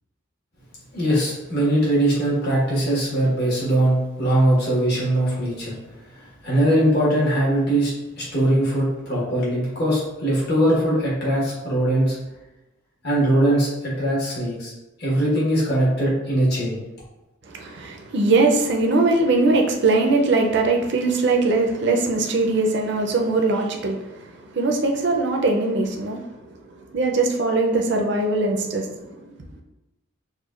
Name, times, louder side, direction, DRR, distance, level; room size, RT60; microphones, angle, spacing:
voice 1, 0.9-5.7 6.2-12.2 13.0-14.7 15.0-16.8, right 1 dB, 50° left, -6 dB, 1.3 m, -21 dB
voice 2, 17.5-26.3 26.9-29.3, right 3 dB, 55° right, 2 dB, 0.5 m, -21 dB
6.5 x 2.2 x 2.4 m, 1.0 s
head